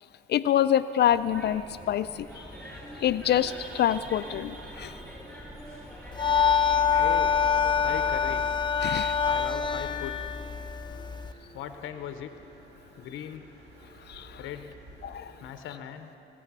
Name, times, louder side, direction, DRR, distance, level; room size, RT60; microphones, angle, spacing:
voice 1, 0.3-1.6 1.9-2.3 3.0-4.9 8.8-9.1 14.1-14.4 15.0-15.3, left 10 dB, 60° left, 13 dB, 0.4 m, -26 dB
sound 1, 1.1-8.4, equal, 5° left, 3.9 m, -45 dB
sound 2, 2.3-15.5, right 2 dB, 70° right, 2.7 m, -51 dB
sound 3, 6.1-11.3, left 7 dB, 20° left, 0.7 m, -25 dB
voice 2, 7.0-7.4 7.8-8.5 9.3-10.2 11.5-12.3 13.0-13.5 14.4-14.8 15.4-16.1, left 10 dB, 85° left, 8 dB, 0.7 m, -38 dB
22.0 x 7.6 x 6.0 m, 3.0 s
cardioid pair, 90°, 20 cm